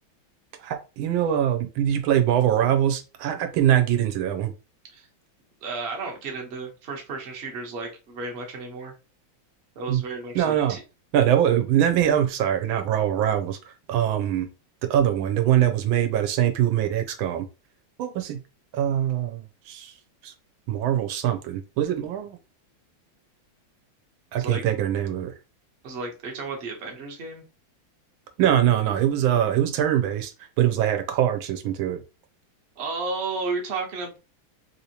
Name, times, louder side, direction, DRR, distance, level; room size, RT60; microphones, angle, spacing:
voice 1, 0.6-4.5 9.9-10.0 10.3-10.8 11.1-14.5 14.9-17.5 18.0-18.4 18.7-19.9 20.2-20.3 20.7-22.4 24.3-25.3 28.4-30.3 30.6-32.0, right 10 dB, 85° right, 6 dB, 1.4 m, -23 dB
voice 2, 5.6-8.9 9.7-10.8 24.4-24.6 25.8-27.4 32.8-34.2, right 3 dB, 45° right, 1 dB, 0.8 m, -33 dB
3.4 x 2.8 x 2.8 m, 0.30 s
omnidirectional pair, 2.2 m